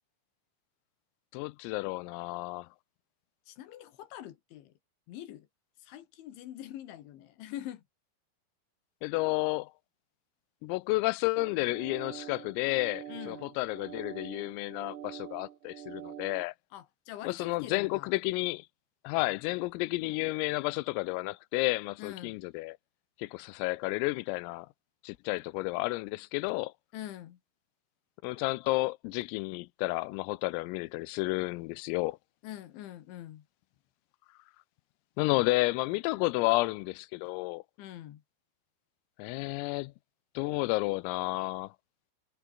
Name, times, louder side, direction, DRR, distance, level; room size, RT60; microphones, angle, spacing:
voice 1, 1.3-2.7 9.0-9.7 10.6-16.5 17.2-18.7 19.0-22.8 23.2-24.7 25.0-26.7 28.2-32.2 35.2-37.6 39.2-39.9 40.4-41.7, left 22 dB, 90° left, 3.4 m, -31 dB
voice 2, 3.5-4.7 5.1-5.5 5.8-7.8 13.1-13.5 16.7-18.1 22.0-22.4 26.9-27.4 32.4-33.5 37.8-38.2, left 12 dB, 70° left, 3.9 m, -44 dB
sound 1, 11.4-16.4, right 11 dB, 65° right, 2.0 m, -45 dB
omnidirectional pair, 5.9 m